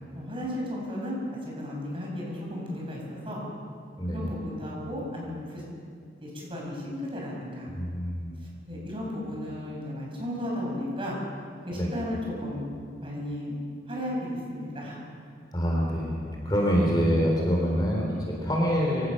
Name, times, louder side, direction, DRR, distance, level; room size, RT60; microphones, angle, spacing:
voice 1, 0.1-1.2 1.4-3.4 4.1-5.6 6.2-7.7 8.4-11.2 11.7-12.6 13.0-13.6 13.9-15.0, left 1 dB, 30° right, -3 dB, 6.6 m, -34 dB
voice 2, 4.0-4.3 7.7-8.4 11.7-11.9 15.5-19.1, equal, 20° left, -2 dB, 3.7 m, -26 dB
25.0 x 17.5 x 6.6 m, 2.2 s
head